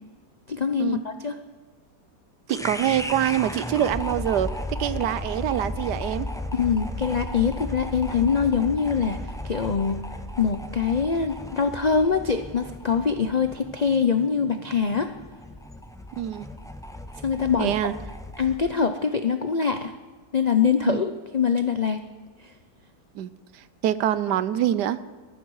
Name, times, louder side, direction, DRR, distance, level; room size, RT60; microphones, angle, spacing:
voice 1, 0.5-1.4 6.5-10.0 10.4-15.1 17.2-17.9 18.4-19.9 20.3-22.0 22.4-22.5, left 6 dB, 75° left, 8 dB, 0.3 m, -24 dB
sound 1, 2.5-18.7, left 1 dB, 5° left, 0.4 m, -35 dB
voice 2, 2.5-4.5 4.8-6.3 16.2-16.5 17.6-17.9 20.8-21.0 23.1-23.3 23.8-25.0, right 11 dB, 90° right, 15 dB, 1.3 m, -25 dB
18.5 x 13.5 x 4.8 m, 1.4 s
omnidirectional pair, 1.7 m